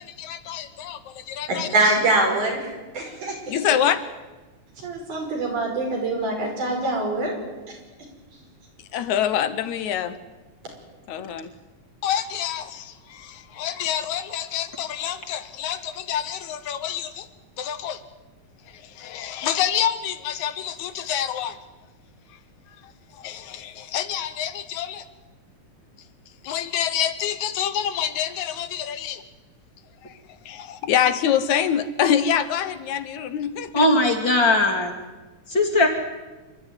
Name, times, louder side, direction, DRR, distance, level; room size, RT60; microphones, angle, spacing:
voice 1, 0.0-1.9 3.5-4.0 8.9-10.2 11.1-11.5 12.0-17.3 17.6-18.0 18.7-21.6 22.8-25.1 26.4-29.2 30.0-30.2 30.5-33.9, left 9 dB, 75° left, 12 dB, 2.2 m, -26 dB
voice 2, 1.5-3.6 4.8-7.3, right 2 dB, 75° right, 0 dB, 6.9 m, -24 dB
voice 3, 33.7-34.9 35.5-35.9, left 2 dB, 35° left, 2 dB, 3.1 m, -19 dB
27.0 x 13.0 x 9.8 m, 1.2 s
omnidirectional pair, 3.6 m